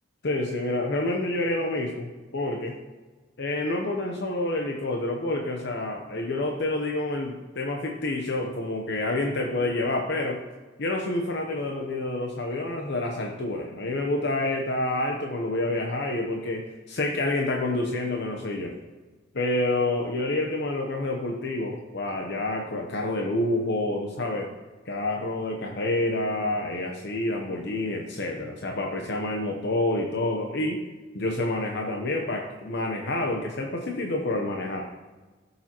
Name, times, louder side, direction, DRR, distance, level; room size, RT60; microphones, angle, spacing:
voice 1, 0.2-2.7 3.4-10.4 10.8-18.7 19.3-24.5 24.9-30.8 31.1-34.8, left 2 dB, 60° left, 1 dB, 0.9 m, -28 dB
14.5 x 6.9 x 3.0 m, 1.3 s
head